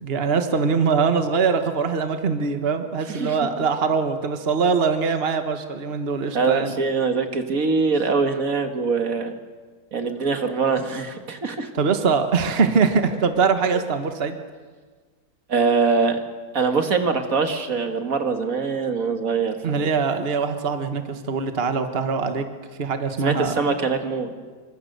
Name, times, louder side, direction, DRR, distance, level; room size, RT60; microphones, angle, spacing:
voice 1, 0.0-6.8 11.7-14.4 19.6-22.4 22.8-23.6, right 5 dB, 40° right, 7 dB, 1.5 m, -22 dB
voice 2, 6.3-9.3 9.9-11.7 15.5-16.2 16.5-19.8 23.2-24.3, right 4 dB, 65° right, 6 dB, 2.1 m, -23 dB
27.0 x 25.0 x 6.8 m, 1.5 s
omnidirectional pair, 1.6 m